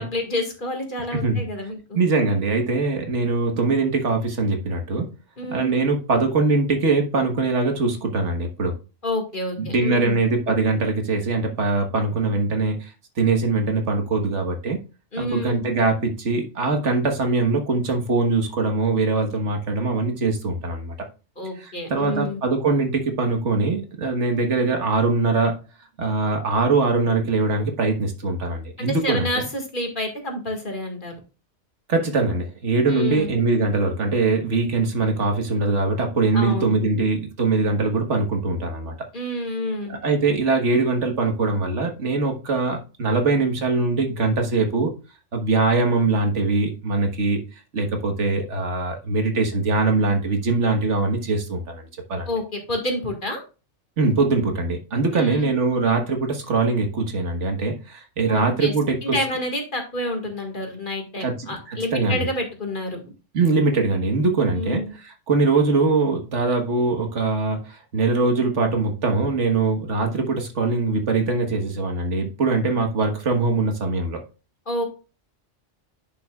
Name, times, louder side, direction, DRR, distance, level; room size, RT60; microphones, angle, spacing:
voice 1, 0.0-2.0 5.4-5.7 9.0-10.2 15.1-15.6 21.4-22.4 28.8-31.1 32.9-33.4 36.3-36.8 39.1-40.0 52.3-53.4 55.1-55.5 58.3-58.7 59.0-63.1 64.5-64.9 74.7-74.8, left 1 dB, 45° left, 2 dB, 2.0 m, -28 dB
voice 2, 1.1-1.4 1.9-5.1 5.5-8.8 9.6-12.9 13.2-14.8 15.2-20.9 21.6-25.6 26.0-29.3 31.9-38.9 39.9-44.9 45.3-51.8 52.1-52.3 54.0-59.2 61.2-62.2 63.3-74.2, right 3 dB, 80° right, 4 dB, 1.7 m, -22 dB
11.0 x 5.8 x 2.4 m, 0.32 s
omnidirectional pair, 1.2 m